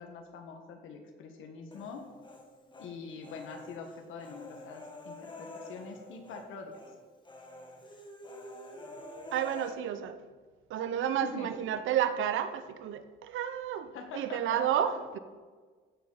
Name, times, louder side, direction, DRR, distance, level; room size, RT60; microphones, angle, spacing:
voice 1, 0.0-2.0 2.8-6.8 11.2-11.5 13.9-14.6 14.9-15.0, left 5 dB, 85° left, 1.7 m, -44 dB
Human voice, 1.7-2.9 3.2-6.5 6.7-6.9 7.2-9.7, left 1 dB, 25° left, 1.8 m, -48 dB
voice 2, 9.3-10.2 10.7-15.2, right 9 dB, 80° right, 0.8 m, -31 dB
15.0 x 6.8 x 4.2 m
cardioid pair, 90°, 20 cm